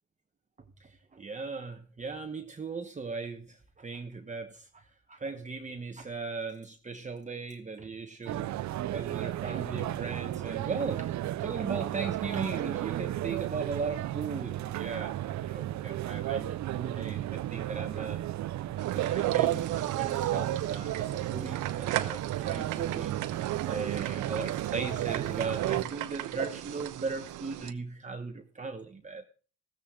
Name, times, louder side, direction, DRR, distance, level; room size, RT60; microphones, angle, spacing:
voice 1, 0.8-8.5 8.9-11.2 11.4-18.2 18.9-29.3, right 4 dB, 25° right, 5 dB, 1.1 m, -38 dB
sound 1, 8.3-25.8, right 13 dB, 70° right, 0.6 m, -33 dB
sound 2, 18.8-27.7, right 14 dB, 85° right, 1.0 m, -36 dB
15.0 x 13.5 x 3.8 m, 0.39 s
cardioid pair, 90°, 30 cm